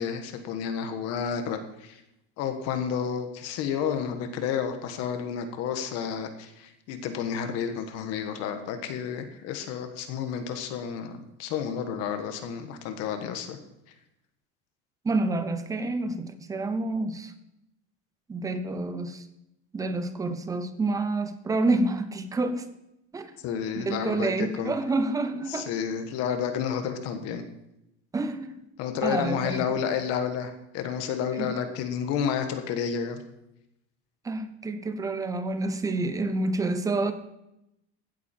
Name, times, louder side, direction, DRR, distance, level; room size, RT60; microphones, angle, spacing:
voice 1, 0.0-2.0 2.4-13.6 23.4-24.7 25.5-27.4 28.8-33.2, left 7 dB, 50° left, 1.5 m, -31 dB
voice 2, 15.0-17.3 18.3-19.3 19.7-22.7 23.1-23.3 23.7-25.7 28.1-28.6 29.0-29.8 31.3-31.6 34.2-37.1, right 2 dB, 10° right, 0.8 m, -28 dB
16.0 x 8.3 x 4.5 m
cardioid pair, 155°, 31 cm